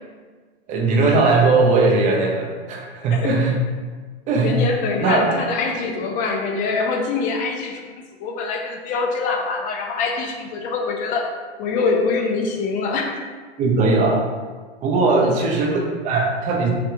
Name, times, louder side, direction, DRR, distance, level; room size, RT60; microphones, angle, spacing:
voice 1, 0.7-3.6 4.3-4.7 5.0-5.3 13.6-14.2 14.8-16.7, right 3 dB, 25° right, 0 dB, 0.7 m, -19 dB
voice 2, 4.4-11.3 11.6-13.2 15.2-15.5, left 4 dB, 25° left, 2 dB, 0.6 m, -24 dB
4.9 x 2.9 x 3.5 m, 1.4 s
hypercardioid pair, 135°, 33 cm